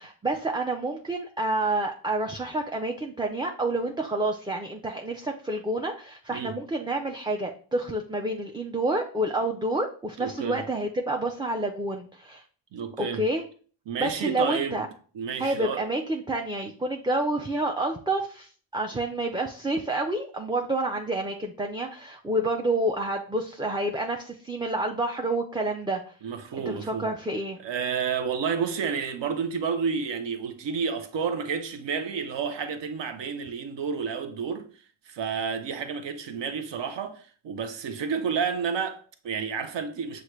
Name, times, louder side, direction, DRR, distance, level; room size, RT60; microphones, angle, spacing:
voice 1, 0.0-12.4 13.0-13.4 14.0-14.9 15.4-26.1 26.7-27.6, right 1 dB, 10° right, 0.5 m, -29 dB
voice 2, 10.2-10.6 12.7-13.2 13.9-14.8 15.1-15.9 26.2-27.1 27.6-34.7 35.1-40.2, right 6 dB, 60° right, 0.8 m, -30 dB
6.3 x 2.5 x 3.1 m
supercardioid pair, 50°, 49 cm